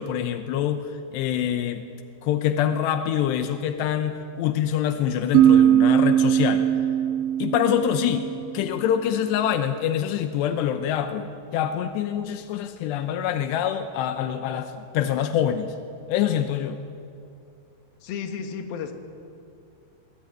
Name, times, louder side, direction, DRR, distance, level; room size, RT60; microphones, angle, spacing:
voice 1, 0.0-1.9 2.2-6.7 7.4-8.3 8.5-15.7 16.1-16.8, left 10 dB, 85° left, 8 dB, 3.1 m, -25 dB
sound 1, 5.3-8.9, right 10 dB, 75° right, 2.2 m, -20 dB
voice 2, 18.0-18.9, left 6 dB, 65° left, 5 dB, 3.3 m, -32 dB
23.5 x 20.0 x 9.2 m, 2.5 s
omnidirectional pair, 4.9 m